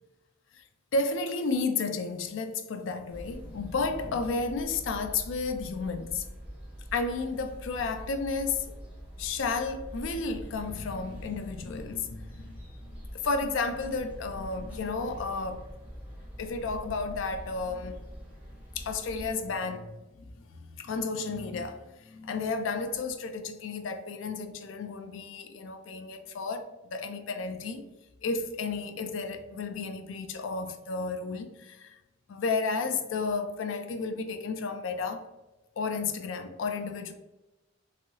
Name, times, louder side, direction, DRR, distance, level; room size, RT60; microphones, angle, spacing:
voice 1, 0.9-6.2 6.9-8.8 9.2-15.7 16.4-18.0 18.7-20.0 20.6-27.9 28.2-32.0 32.3-35.2 35.8-37.1, left 4 dB, 65° left, 0.4 m, -32 dB
sound 1, 3.1-19.3, equal, 5° right, 0.7 m, -44 dB
3.0 x 2.6 x 2.7 m
head